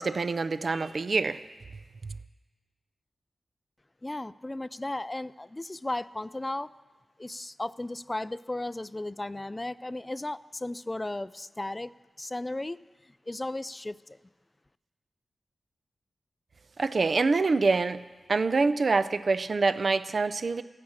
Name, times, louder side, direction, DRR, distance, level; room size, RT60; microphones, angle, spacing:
voice 1, 0.0-1.4 16.8-18.0 18.3-20.6, right 4 dB, 60° right, 13 dB, 0.4 m, -25 dB
voice 2, 4.0-6.7 7.2-11.9 12.2-12.8 13.3-14.2, left 2 dB, 25° left, 17 dB, 0.3 m, -35 dB
15.0 x 6.0 x 8.6 m, 1.3 s
cardioid pair, 65°, 0 cm